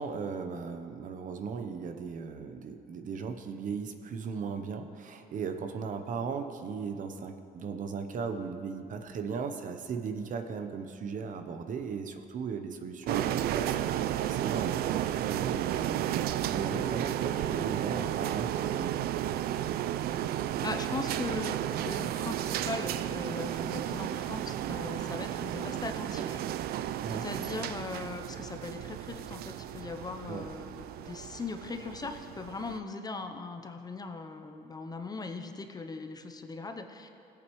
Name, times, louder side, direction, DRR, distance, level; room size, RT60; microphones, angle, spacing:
voice 1, 0.0-19.0 27.0-27.2 30.3-30.5, right 5 dB, 50° right, 7 dB, 0.8 m, -37 dB
sound 1, 13.1-32.8, right 11 dB, 65° right, 0.4 m, -33 dB
voice 2, 20.6-21.6 21.8-26.4 26.7-26.9 27.2-37.1, left 3 dB, 25° left, 5 dB, 0.7 m, -39 dB
17.0 x 8.5 x 3.1 m, 2.5 s
cardioid pair, 110°, 17 cm